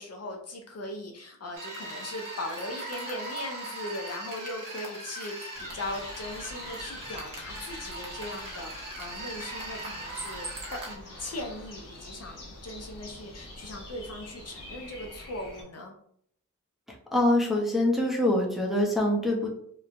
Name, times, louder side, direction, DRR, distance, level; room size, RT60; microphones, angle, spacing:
voice 1, 0.0-15.9, left 1 dB, 55° left, 2 dB, 0.5 m, -39 dB
sound 1, 1.5-11.0, right 1 dB, 90° right, 0.8 m, -39 dB
sound 2, 5.5-15.6, left 1 dB, 85° left, 1.0 m, -45 dB
voice 2, 17.1-19.5, left 1 dB, ahead, -2 dB, 0.6 m, -24 dB
3.0 x 2.1 x 2.4 m, 0.66 s
wide cardioid pair, 80°, 32 cm